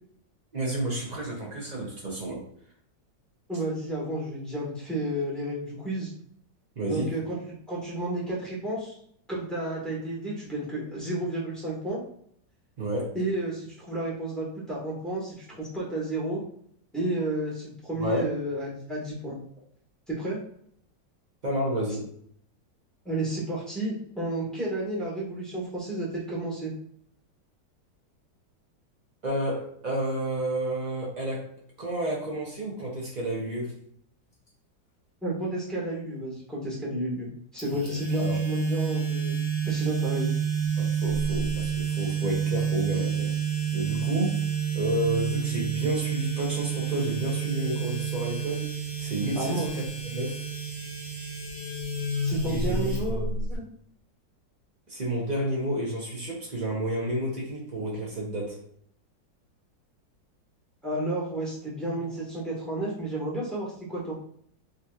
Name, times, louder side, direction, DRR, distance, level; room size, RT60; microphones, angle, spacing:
voice 1, 0.5-2.4 6.8-7.1 12.8-13.1 18.0-18.3 21.4-22.1 29.2-31.5 31.8-33.8 37.7-38.4 40.8-43.4 43.7-44.4 44.7-48.7 49.0-50.4 52.5-53.4 54.9-58.6, right 1 dB, 45° right, -3 dB, 0.5 m, -31 dB
voice 2, 3.5-6.1 6.9-7.4 7.7-9.0 9.3-12.0 13.1-16.4 16.9-19.4 20.1-20.4 23.0-26.7 35.2-37.3 37.5-39.4 39.6-40.3 49.3-49.7 52.2-53.6 60.8-64.1, right 1 dB, ahead, -6 dB, 1.1 m, -31 dB
sound 1, 37.6-53.5, right 6 dB, 30° left, 0.7 m, -29 dB
3.9 x 2.8 x 2.4 m, 0.65 s
omnidirectional pair, 2.0 m